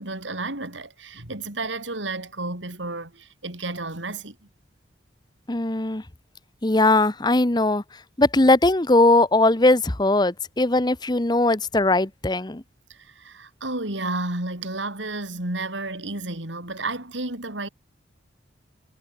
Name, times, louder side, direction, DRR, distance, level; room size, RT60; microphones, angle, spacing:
voice 1, 0.0-4.4 12.9-17.7, right 2 dB, 85° right, 5.4 m, -32 dB
voice 2, 5.5-6.0 6.6-7.8 8.2-12.6, left 2 dB, 25° left, 1.0 m, -19 dB
head